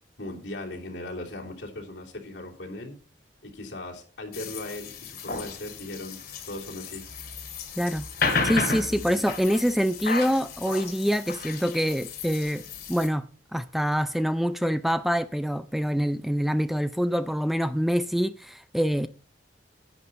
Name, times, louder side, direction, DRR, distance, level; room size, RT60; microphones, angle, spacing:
voice 1, 0.2-3.0 3.4-7.0 8.9-9.2, left 1 dB, 75° left, 3.2 m, -38 dB
sound 1, 4.3-13.1, left 4 dB, 60° left, 2.4 m, -33 dB
voice 2, 7.8-8.1 8.4-19.1, equal, ahead, 0.4 m, -25 dB
11.0 x 9.8 x 4.2 m
head